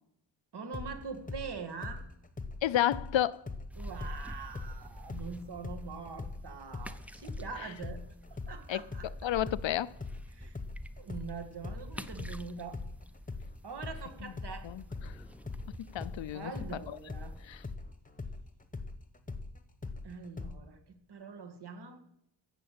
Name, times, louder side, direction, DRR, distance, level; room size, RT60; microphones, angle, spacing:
voice 1, 0.5-2.0 3.8-8.0 8.3-9.1 10.3-10.6 11.0-12.8 13.6-14.7 16.3-17.3 20.0-22.0, right 5 dB, 60° right, 2.1 m, -43 dB
sound 1, 0.7-4.2 4.5-12.4 12.7-20.6, left 3 dB, 20° left, 1.1 m, -42 dB
voice 2, 2.6-3.4 8.7-8.8 9.2-9.9 14.6-15.1 15.9-16.8 17.5-17.6, left 12 dB, 75° left, 0.6 m, -31 dB
sound 2, 3.7-17.8, equal, 5° right, 0.6 m, -48 dB
15.0 x 6.8 x 8.6 m
wide cardioid pair, 140°, 45 cm